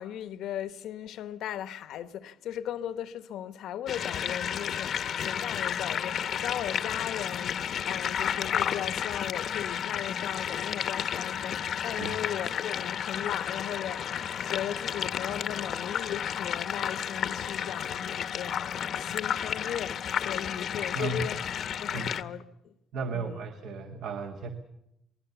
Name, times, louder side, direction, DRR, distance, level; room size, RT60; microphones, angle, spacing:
voice 1, 0.0-21.4 21.8-22.7 23.1-23.4, left 10 dB, 75° left, 1.1 m, -37 dB
sound 1, 3.9-22.2, left 8 dB, 55° left, 0.9 m, -32 dB
voice 2, 20.9-21.4 21.9-22.4 22.9-24.5, right 3 dB, 75° right, 1.8 m, -35 dB
27.0 x 20.0 x 7.0 m
cardioid pair, 135°, 0 cm